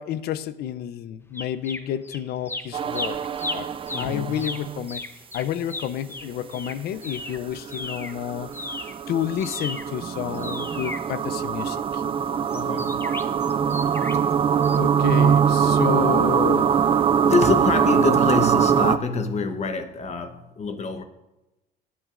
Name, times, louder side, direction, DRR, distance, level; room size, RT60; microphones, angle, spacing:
voice 1, 0.0-3.2 3.5-3.7 4.0-5.0 5.3-8.5 9.1-12.0 14.7-16.8, left 10 dB, 70° left, 0.6 m, -30 dB
sound 1, 1.3-2.2 2.4-8.2 8.5-11.8 12.5-14.3 14.6-14.8, left 2 dB, 15° left, 0.7 m, -35 dB
sound 2, 2.7-4.9 7.3-19.0, right 7 dB, 30° right, 0.4 m, -22 dB
voice 2, 3.9-4.5 12.5-13.1 17.2-21.0, left 4 dB, 40° left, 1.0 m, -26 dB
sound 3, 13.0-19.6, right 2 dB, 10° right, 2.3 m, -47 dB
20.0 x 9.2 x 2.5 m
cardioid pair, 110°, 17 cm